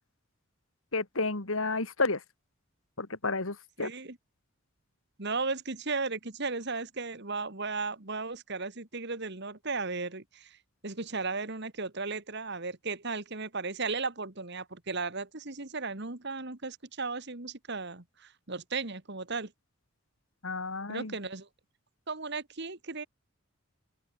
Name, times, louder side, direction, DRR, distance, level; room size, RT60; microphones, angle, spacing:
voice 1, 0.9-2.2 3.0-3.9 20.4-21.1, left 3 dB, 70° left, 2.3 m, -31 dB
voice 2, 3.8-4.2 5.2-10.6 10.8-19.5 20.9-21.5 22.1-23.1, right 4 dB, 50° right, 2.0 m, -35 dB
open air
head